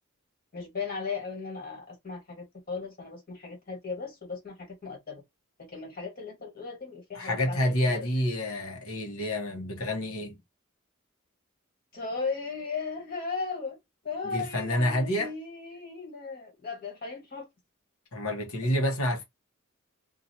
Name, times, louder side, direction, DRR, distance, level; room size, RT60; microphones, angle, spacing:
voice 1, 0.5-5.2 5.7-8.1 11.9-13.8 14.0-17.5, left 4 dB, 40° left, 1.6 m, -36 dB
voice 2, 7.1-10.4 14.2-15.3 18.1-19.2, left 1 dB, 90° left, 1.0 m, -28 dB
2.7 x 2.4 x 2.6 m
head